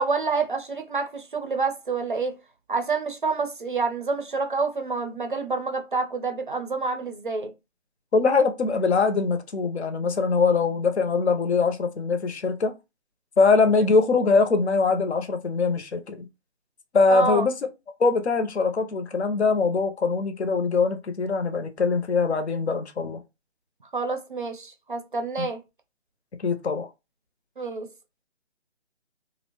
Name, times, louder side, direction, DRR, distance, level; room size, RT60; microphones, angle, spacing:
voice 1, 0.0-2.3 2.7-7.5 17.1-17.4 23.9-25.6 27.6-27.9, right 4 dB, 45° right, 0.5 m, -27 dB
voice 2, 8.1-12.7 13.4-16.3 16.9-17.5 18.0-23.2 25.4-25.5 26.4-26.9, left 4 dB, 65° left, 0.7 m, -22 dB
2.6 x 2.0 x 2.9 m
hypercardioid pair, 175°, 35 cm